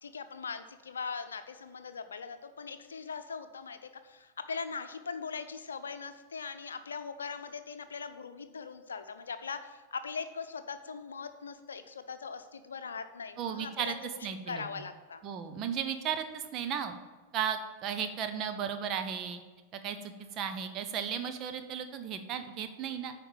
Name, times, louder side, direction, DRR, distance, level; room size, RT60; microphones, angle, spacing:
voice 1, 0.0-13.9 14.5-15.2, left 5 dB, 70° left, 10 dB, 0.7 m, -40 dB
voice 2, 13.4-13.9 14.2-14.6 15.2-16.9 17.3-19.4 19.7-23.1, right 8 dB, 35° right, 8 dB, 0.8 m, -35 dB
9.2 x 5.1 x 7.4 m, 1.3 s
figure-of-eight pair, 90°, 0 cm